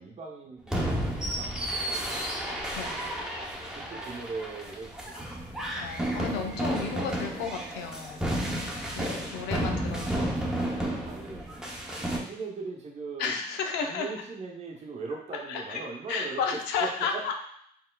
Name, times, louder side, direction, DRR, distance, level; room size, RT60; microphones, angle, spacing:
voice 1, 0.0-2.5 3.8-5.4 10.7-11.5 11.9-13.4 13.8-17.3, right 4 dB, 40° right, 0 dB, 0.8 m, -40 dB
sound 1, 0.7-12.2, right 1 dB, 5° right, 0.7 m, -32 dB
voice 2, 2.8-3.2 5.8-8.3 9.0-11.0 13.2-14.1 15.5-15.8 16.1-17.3, left 5 dB, 90° left, 3 dB, 0.6 m, -33 dB
4.4 x 3.6 x 2.3 m, 0.67 s
cardioid pair, 110°, 17 cm